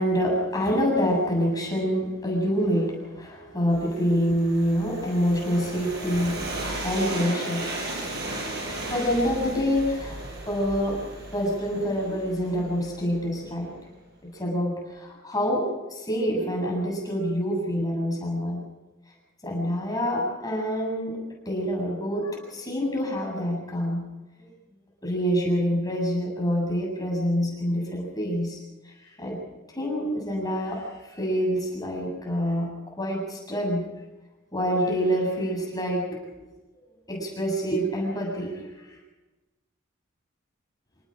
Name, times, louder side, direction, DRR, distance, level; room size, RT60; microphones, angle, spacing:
voice 1, 0.0-7.9 8.3-13.8 14.2-18.6 19.4-21.2 21.5-24.1 24.4-24.5 25.0-28.6 28.8-29.4 29.7-33.9 34.5-36.2 37.1-39.0, equal, 20° left, -1 dB, 7.6 m, -27 dB
Train, 3.7-13.5, right 1 dB, 50° right, 6.5 m, -36 dB
26.5 x 19.0 x 5.1 m, 1.1 s
head